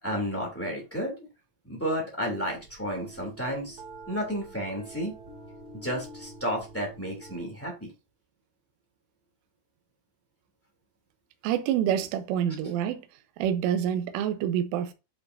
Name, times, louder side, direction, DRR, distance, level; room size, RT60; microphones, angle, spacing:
voice 1, 0.0-1.1 1.6-3.8 4.1-5.1 5.7-7.9 12.5-12.6, equal, 10° left, 0.7 m, -32 dB
sound 1, 2.4-7.4, right 2 dB, 30° right, 1.9 m, -47 dB
voice 2, 11.4-13.1 13.4-14.9, right 9 dB, 80° right, 3.4 m, -27 dB
11.0 x 5.7 x 2.7 m
omnidirectional pair, 6.0 m